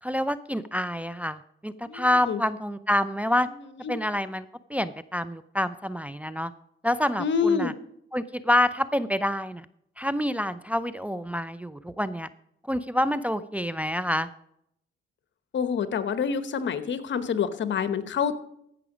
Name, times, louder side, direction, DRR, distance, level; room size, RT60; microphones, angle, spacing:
voice 1, 0.0-3.5 3.9-6.5 6.8-7.7 8.1-9.7 10.0-12.3 12.6-14.3, left 1 dB, 5° right, 12 dB, 0.4 m, -27 dB
voice 2, 1.8-2.4 3.8-3.9 7.2-7.7 15.5-18.3, left 6 dB, 60° left, 12 dB, 1.1 m, -27 dB
15.5 x 6.0 x 5.0 m, 0.74 s
cardioid pair, 80°, 21 cm